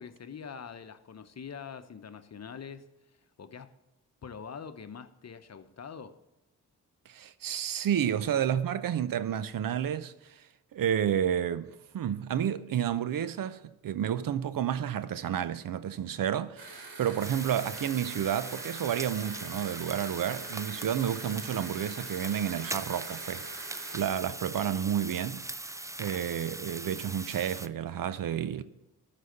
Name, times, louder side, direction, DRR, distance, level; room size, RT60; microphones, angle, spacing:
voice 1, 0.0-2.9 3.4-3.7 4.2-6.1, left 6 dB, 40° left, 0.9 m, -44 dB
voice 2, 7.1-10.4 10.7-23.5 23.9-25.4 26.0-28.6, right 9 dB, 60° right, 0.7 m, -30 dB
sound 1, 16.6-24.0, right 3 dB, 85° right, 2.6 m, -45 dB
sound 2, 17.2-27.7, right 2 dB, 10° right, 0.5 m, -41 dB
12.5 x 4.2 x 7.9 m
supercardioid pair, 50°, 39 cm